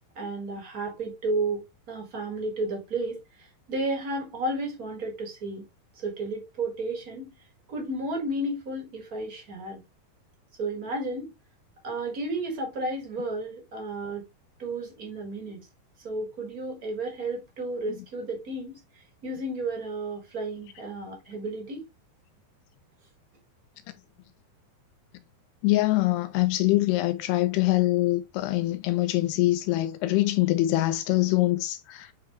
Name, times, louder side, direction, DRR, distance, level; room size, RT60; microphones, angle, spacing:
voice 1, 0.1-5.6 5.9-7.3 7.7-9.8 10.6-11.3 11.8-14.2 14.6-15.6 16.0-18.8 19.2-21.8, right 2 dB, 40° right, 1.3 m, -32 dB
voice 2, 25.6-32.1, left 17 dB, 80° left, 2.6 m, -24 dB
8.7 x 3.8 x 3.1 m
omnidirectional pair, 4.7 m